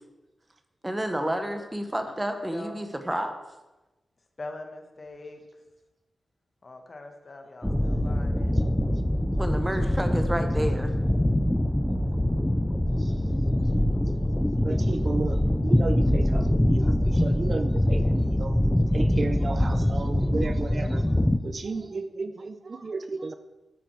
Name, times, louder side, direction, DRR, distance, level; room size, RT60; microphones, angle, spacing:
voice 1, 0.8-3.3 9.4-10.9, right 1 dB, 10° right, 6 dB, 1.3 m, -30 dB
voice 2, 2.3-2.8 4.4-5.4 6.6-8.5, left 2 dB, 35° left, 4 dB, 1.6 m, -42 dB
sound 1, 7.6-21.4, left 1 dB, 5° left, 0.6 m, -24 dB
voice 3, 14.6-18.6 18.9-21.1 21.4-23.3, right 3 dB, 45° right, 10 dB, 0.6 m, -34 dB
13.0 x 9.0 x 4.7 m, 1.1 s
wide cardioid pair, 130°, 0 cm